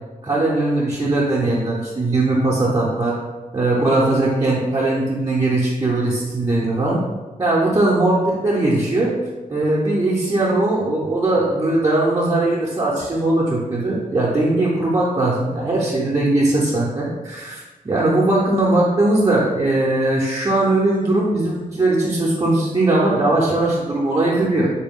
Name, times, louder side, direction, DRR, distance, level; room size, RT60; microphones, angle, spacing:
voice 1, 0.2-3.2 3.5-7.0 7.4-9.1 9.5-24.7, right 2 dB, 25° right, -5 dB, 0.5 m, -19 dB
3.8 x 2.1 x 3.5 m, 1.2 s
wide cardioid pair, 140°, 15 cm